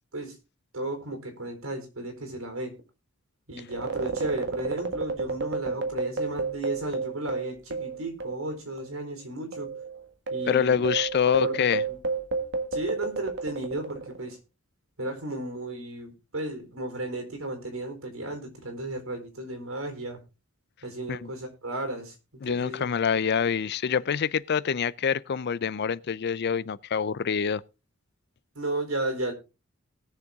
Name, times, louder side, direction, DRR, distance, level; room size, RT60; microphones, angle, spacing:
voice 1, 0.7-2.8 3.5-9.7 10.3-10.8 11.3-12.0 12.7-14.4 15.0-20.2 20.8-22.1 22.5-22.8 28.5-29.3, right 2 dB, 85° right, 3.9 m, -34 dB
sound 1, 3.7-8.5 8.8-8.9 9.5-14.3, right 4 dB, 60° right, 1.8 m, -31 dB
voice 2, 10.5-11.8 21.1-21.3 22.4-27.6, left 6 dB, 50° left, 0.5 m, -26 dB
19.0 x 6.8 x 3.6 m
head